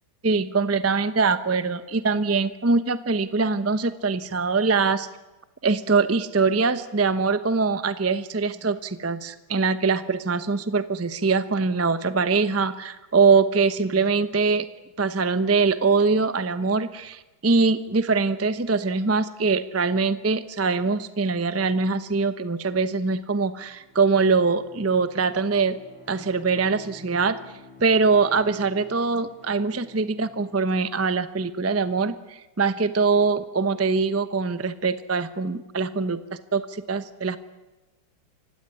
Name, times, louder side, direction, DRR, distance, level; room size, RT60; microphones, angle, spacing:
voice 1, 0.2-5.1 5.6-14.7 15.0-25.7 26.1-27.4 27.8-37.4, right 4 dB, 20° right, 12 dB, 0.3 m, -23 dB
Bowed string instrument, 23.4-31.2, left 2 dB, 5° left, 5.4 m, -50 dB
28.5 x 16.5 x 9.8 m, 1.1 s
omnidirectional pair, 2.2 m